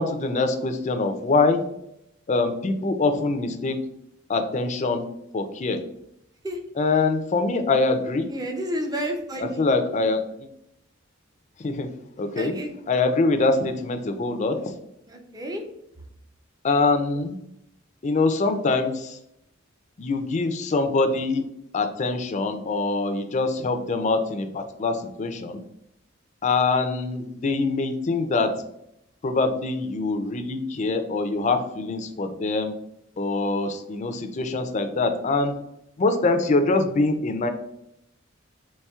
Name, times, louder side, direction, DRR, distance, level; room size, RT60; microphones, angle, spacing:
voice 1, 0.0-1.6 2.3-3.8 4.3-5.1 5.3-5.8 6.8-8.3 9.6-10.5 11.6-11.9 12.2-12.6 12.9-14.7 16.6-17.4 18.0-19.2 20.0-21.4 21.7-25.6 26.4-28.6 29.2-32.7 33.2-35.6 36.0-37.5, left 3 dB, 35° left, 7 dB, 0.4 m, -24 dB
voice 2, 8.3-9.7 12.4-12.7 13.0-13.1 15.1-15.6, equal, 20° right, 4 dB, 0.5 m, -31 dB
4.2 x 3.1 x 2.3 m, 0.78 s
head